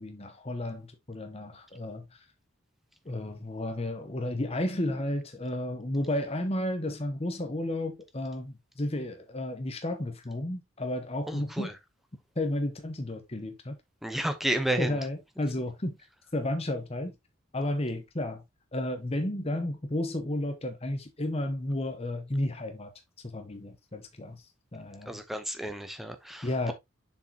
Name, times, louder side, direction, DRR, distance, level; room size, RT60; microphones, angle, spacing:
voice 1, 0.0-2.0 3.1-11.7 12.4-13.8 14.8-16.0 16.3-17.1 17.5-18.4 18.7-22.9 23.2-24.4 24.7-25.2 26.4-26.7, left 1 dB, 30° left, 0.9 m, -32 dB
voice 2, 11.3-11.8 14.0-15.0 25.1-26.7, right 1 dB, ahead, 0.8 m, -32 dB
7.1 x 4.8 x 2.8 m
head